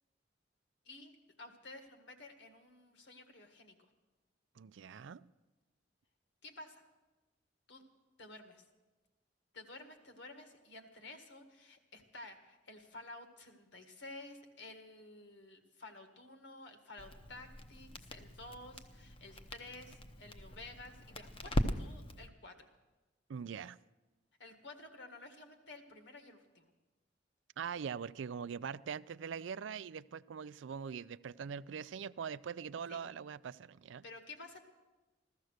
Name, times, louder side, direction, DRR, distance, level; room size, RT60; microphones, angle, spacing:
voice 1, 1.4-3.8 6.4-6.8 7.7-7.8 8.2-8.7 9.5-22.7 24.4-26.7 32.9-33.0 34.0-34.6, left 2 dB, 70° left, 1.9 m, -52 dB
voice 2, 4.6-5.3 23.3-23.8 27.6-34.0, right 7 dB, 85° right, 0.4 m, -42 dB
Crackle, 17.0-22.3, equal, 30° left, 0.8 m, -40 dB
15.5 x 14.0 x 6.5 m
head